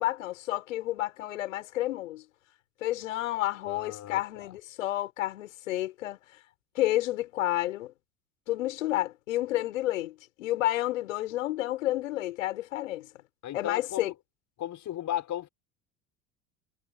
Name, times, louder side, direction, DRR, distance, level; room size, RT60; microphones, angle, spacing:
voice 1, 0.0-2.2 2.8-6.2 6.7-7.9 8.5-13.1 13.5-14.1, left 15 dB, 75° left, 6.7 m, -30 dB
voice 2, 3.7-4.5 13.4-14.1 14.6-15.5, left 12 dB, 50° left, 6.4 m, -35 dB
hypercardioid pair, 70°, 39 cm